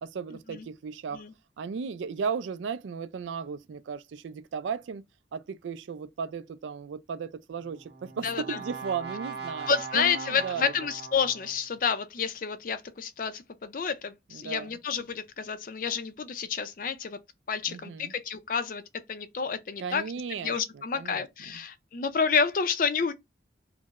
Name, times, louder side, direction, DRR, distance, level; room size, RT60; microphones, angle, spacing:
voice 1, 0.0-1.2 1.6-5.0 5.3-9.7 9.9-10.6 14.3-14.7 17.7-18.1 19.8-21.2 21.5-21.6, right 6 dB, 80° right, 0.3 m, -35 dB
Brass instrument, 7.5-11.7, right 5 dB, 65° right, 1.1 m, -40 dB
voice 2, 8.2-8.6 9.7-17.2 17.5-18.8 19.1-20.0 20.4-23.1, left 6 dB, 45° left, 0.4 m, -29 dB
4.5 x 2.0 x 2.4 m
head